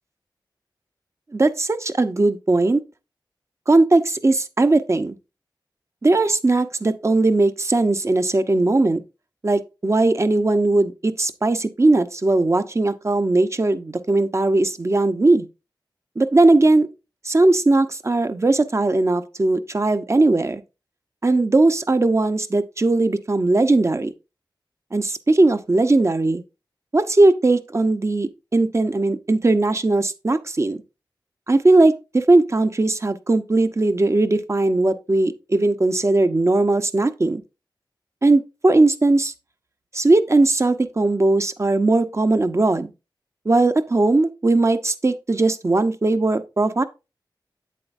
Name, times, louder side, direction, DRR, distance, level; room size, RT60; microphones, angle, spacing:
voice 1, 1.3-2.8 3.7-5.2 6.0-9.0 9.4-15.5 16.2-16.9 17.2-20.6 21.2-24.1 24.9-26.4 26.9-30.8 31.5-37.4 38.2-39.3 39.9-42.9 43.4-46.8, right 2 dB, 35° right, 0.9 m, -19 dB
8.9 x 7.6 x 2.6 m
wide cardioid pair, 85°, 8 cm